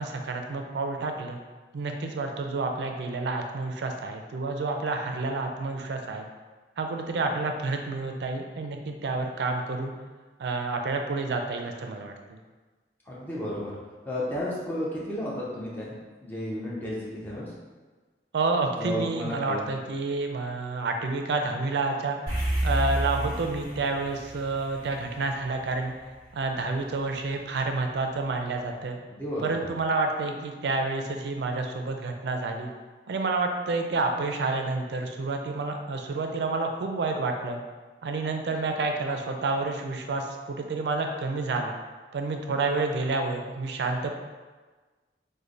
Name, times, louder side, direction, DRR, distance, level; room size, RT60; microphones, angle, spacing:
voice 1, 0.0-1.4 1.7-6.3 6.8-9.9 10.4-12.4 18.3-22.2 22.4-25.9 26.3-29.0 29.4-32.7 33.1-37.6 38.0-41.7 42.1-44.1, right 3 dB, 75° right, 4 dB, 0.4 m, -29 dB
voice 2, 13.1-13.8 14.1-17.5 18.7-19.6 29.1-29.6, left 1 dB, 10° left, -7 dB, 0.6 m, -33 dB
sound 1, 22.3-26.8, right 1 dB, 45° left, 1.5 m, -31 dB
3.2 x 2.1 x 3.8 m, 1.3 s
head